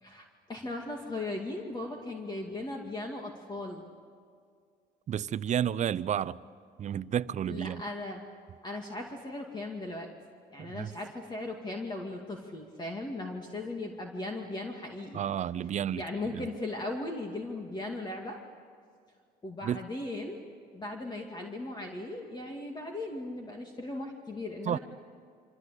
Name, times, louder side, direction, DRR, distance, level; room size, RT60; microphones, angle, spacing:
voice 1, 0.0-3.8 7.5-8.2 8.6-10.1 10.5-15.2 16.0-18.4 19.4-20.4 20.7-24.8, left 2 dB, 25° left, 2.4 m, -38 dB
voice 2, 5.1-6.4 6.8-7.8 10.6-10.9 15.1-16.0 16.3-16.5 19.6-19.8 24.6-24.8, right 9 dB, 45° right, 0.7 m, -31 dB
27.0 x 25.5 x 8.4 m
cardioid pair, 110°, 17 cm